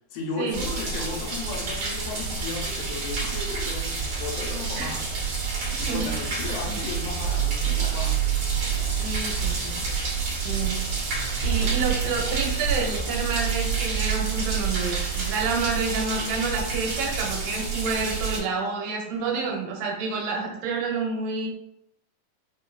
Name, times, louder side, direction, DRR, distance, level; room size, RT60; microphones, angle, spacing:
voice 1, 0.1-5.0 5.8-8.2, left 4 dB, 85° left, 0 dB, 2.1 m, -35 dB
sound 1, 0.5-18.4, right 5 dB, 65° right, 1.5 m, -28 dB
voice 2, 5.6-6.3 6.6-6.8 8.8-9.8 10.4-10.9 11.4-21.5, right 4 dB, 90° right, 0 dB, 2.4 m, -29 dB
5.1 x 2.2 x 2.3 m, 0.79 s
omnidirectional pair, 3.8 m